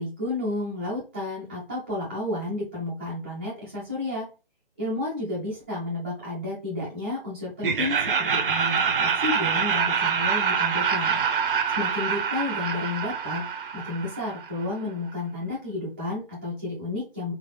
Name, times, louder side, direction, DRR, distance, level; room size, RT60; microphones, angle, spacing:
voice 1, 0.0-4.3 4.8-11.2 11.8-13.5 13.7-17.3, left 2 dB, 10° right, -8 dB, 0.5 m, -31 dB
Laughter, 7.6-14.6, right 6 dB, 60° right, 0.7 m, -25 dB
3.8 x 3.1 x 3.2 m, 0.33 s
hypercardioid pair, 165°, 30 cm